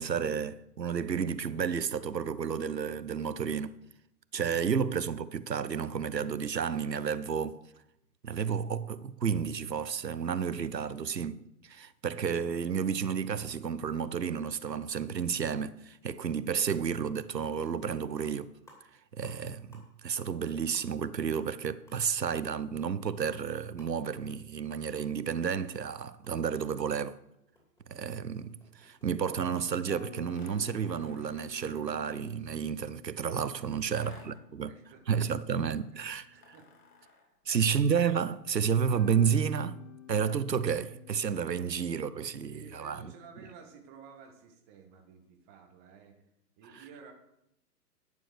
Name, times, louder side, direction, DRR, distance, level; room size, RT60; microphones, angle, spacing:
voice 1, 0.0-3.7 4.3-7.6 8.2-18.5 19.2-27.2 27.9-34.7 35.1-36.3 37.5-39.8 40.1-43.1 46.7-46.8, right 7 dB, 85° right, 0.8 m, -31 dB
sound 1, 17.6-17.9 18.1-19.4 19.7-20.0 20.2-20.4 20.7-25.4 25.7-30.6, left 1 dB, 5° left, 2.6 m, -61 dB
sound 2, 29.9-36.6 38.9-43.8, left 6 dB, 40° left, 2.1 m, -53 dB
sound 3, 30.3-32.3 33.9-34.5 36.3-37.4, left 4 dB, 65° left, 3.0 m, -57 dB
voice 2, 33.7-35.2 36.2-36.7 37.0-37.8 41.7-46.2 46.6-47.1, right 6 dB, 10° right, 0.5 m, -54 dB
11.0 x 7.0 x 6.4 m
figure-of-eight pair, 120°, 49 cm